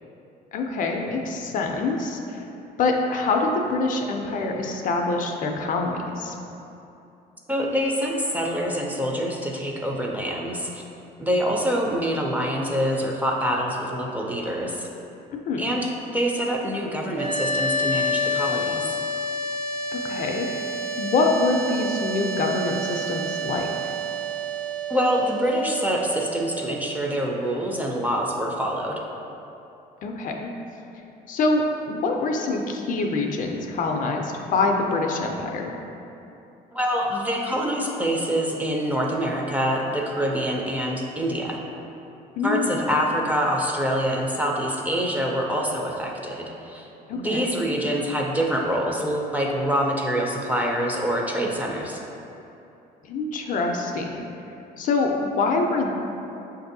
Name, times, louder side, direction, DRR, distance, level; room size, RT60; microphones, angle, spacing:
voice 1, 0.5-2.5 2.8-6.3 15.5-15.7 19.9-20.5 21.0-23.7 30.0-30.5 31.3-35.7 42.4-42.8 47.1-47.5 53.1-54.3 54.8-56.0, left 3 dB, 50° left, 2 dB, 0.4 m, -25 dB
voice 2, 7.5-10.8 11.2-14.9 15.6-19.0 24.9-29.0 36.7-41.6 42.4-52.0, equal, 10° right, -1 dB, 0.4 m, -25 dB
sound 1, 17.1-28.2, equal, 80° right, 0.6 m, -29 dB
6.0 x 2.6 x 2.6 m, 2.8 s
cardioid pair, 110°, 17 cm